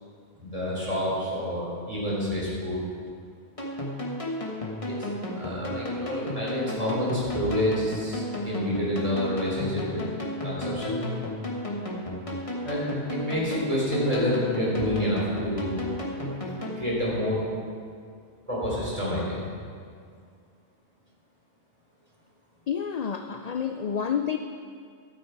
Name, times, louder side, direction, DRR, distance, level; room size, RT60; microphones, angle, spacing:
voice 1, 0.4-2.8 4.9-5.1 5.3-10.0 10.4-11.0 12.6-15.8 16.8-17.5 18.5-19.4, left 1 dB, 35° right, -6 dB, 3.5 m, -28 dB
sound 1, 3.6-16.8, left 1 dB, 30° left, 1.4 m, -33 dB
voice 2, 22.7-24.4, left 7 dB, 55° left, 7 dB, 0.4 m, -29 dB
12.5 x 8.4 x 4.7 m, 2.2 s
omnidirectional pair, 1.1 m